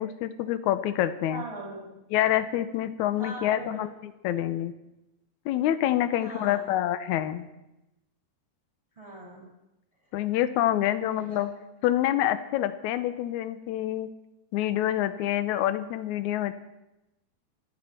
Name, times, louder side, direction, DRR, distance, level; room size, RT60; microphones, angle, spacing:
voice 1, 0.0-1.4 2.1-4.7 5.5-7.5 10.1-11.5 11.8-14.1 14.5-16.5, left 12 dB, 80° left, 12 dB, 1.8 m, -27 dB
voice 2, 1.3-1.9 3.2-3.9 6.2-6.6 9.0-9.4 11.1-11.4, right 2 dB, 10° right, -3 dB, 5.6 m, -40 dB
27.0 x 10.5 x 4.3 m, 0.94 s
omnidirectional pair, 4.1 m